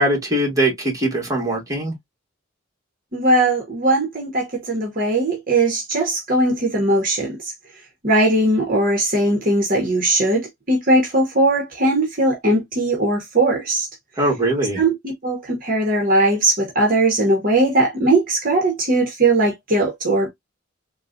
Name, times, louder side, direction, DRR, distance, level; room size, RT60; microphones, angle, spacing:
voice 1, 0.0-1.9 14.2-14.8, right 1 dB, 15° right, 1.6 m, -21 dB
voice 2, 3.1-7.4 8.0-13.9 14.8-20.3, right 2 dB, 45° right, 1.1 m, -19 dB
3.8 x 2.3 x 2.5 m
head